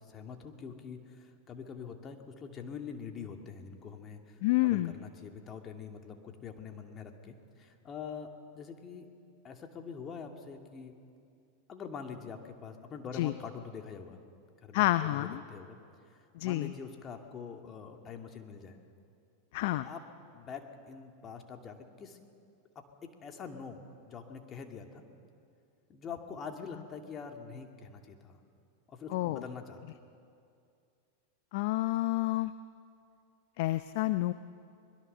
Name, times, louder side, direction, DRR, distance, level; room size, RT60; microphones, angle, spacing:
voice 1, 0.0-8.3 8.5-9.1 9.4-10.9 11.7-14.2 14.6-15.8 16.1-18.8 19.7-20.1 20.3-22.2 22.8-25.0 25.9-28.4 28.9-29.8, left 6 dB, 30° left, 4 dB, 2.3 m, -45 dB
voice 2, 4.4-4.9 13.1-13.3 14.7-15.4 16.3-16.7 19.5-19.9 29.1-29.4 31.5-32.5 33.6-34.3, left 17 dB, 60° left, 13 dB, 0.6 m, -29 dB
23.5 x 21.0 x 6.8 m, 2.4 s
hypercardioid pair, 95°, 0 cm